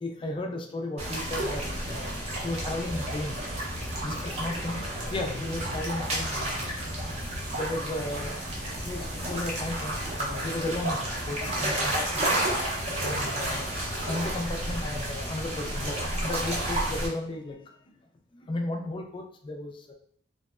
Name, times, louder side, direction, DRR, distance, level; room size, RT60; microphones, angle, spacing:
voice 1, 0.0-3.7 4.0-6.8 7.5-8.4 8.8-12.2 13.0-13.7 14.1-16.0 16.2-17.6 18.5-19.9, left 2 dB, 30° left, 3 dB, 0.3 m, -34 dB
sound 1, 1.0-17.1, right 1 dB, 35° right, 0.6 m, -31 dB
2.8 x 2.1 x 2.3 m, 0.62 s
head